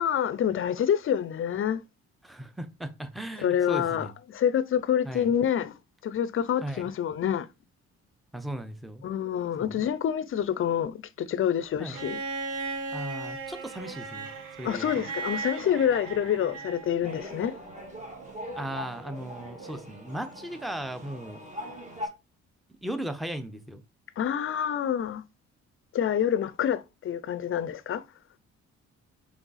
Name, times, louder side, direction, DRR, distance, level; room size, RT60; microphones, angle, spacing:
voice 1, 0.0-1.8 3.4-5.8 6.0-7.5 9.0-12.2 14.6-17.5 24.2-25.2 25.9-28.0, left 9 dB, 45° left, 0.5 m, -27 dB
voice 2, 2.2-4.1 5.0-5.3 6.6-6.9 8.3-9.0 9.6-9.8 11.8-12.0 12.9-14.3 14.6-15.0 18.5-21.4 22.8-23.8, right 1 dB, ahead, 0.6 m, -37 dB
Bowed string instrument, 11.9-17.0 18.4-18.5, right 4 dB, 90° right, 1.0 m, -36 dB
sound 1, 17.0-22.1, equal, 25° right, 1.6 m, -41 dB
3.5 x 3.4 x 4.0 m
cardioid pair, 90°, 30 cm